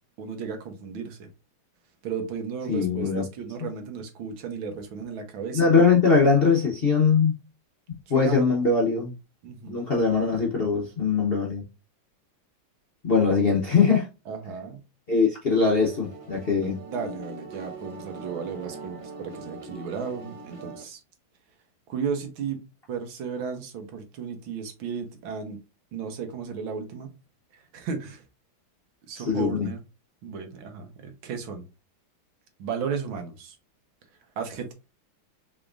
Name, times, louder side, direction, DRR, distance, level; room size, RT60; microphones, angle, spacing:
voice 1, 0.2-1.3 2.0-5.7 8.1-8.5 9.4-9.8 14.3-14.8 16.9-21.0 21.9-22.6 22.9-25.6 25.9-27.1 27.5-28.2 29.1-29.8 30.2-31.6 32.6-33.6 34.4-34.7, right 6 dB, 80° right, 1.9 m, -34 dB
voice 2, 2.7-3.2 5.5-7.3 8.1-9.1 9.7-11.6 13.0-14.1 15.1-16.8 29.2-29.7, left 5 dB, 45° left, 0.8 m, -21 dB
sound 1, 15.7-20.8, right 3 dB, 50° right, 0.3 m, -41 dB
5.8 x 3.5 x 2.5 m
omnidirectional pair, 2.2 m